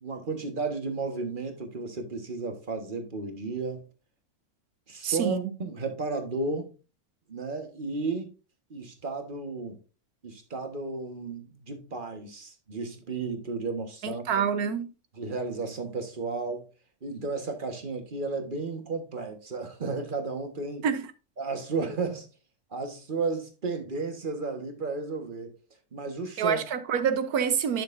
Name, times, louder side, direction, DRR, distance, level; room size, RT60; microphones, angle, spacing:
voice 1, 0.0-3.9 4.9-6.7 7.3-8.3 8.7-9.8 10.2-14.4 15.1-16.7 17.0-20.9 21.4-22.3 22.7-25.6 25.9-26.6, right 3 dB, 35° right, 1.5 m, -33 dB
voice 2, 5.0-5.5 14.0-14.9 20.8-21.0 26.4-27.8, right 7 dB, 90° right, 1.4 m, -27 dB
11.0 x 6.5 x 2.6 m
omnidirectional pair, 1.5 m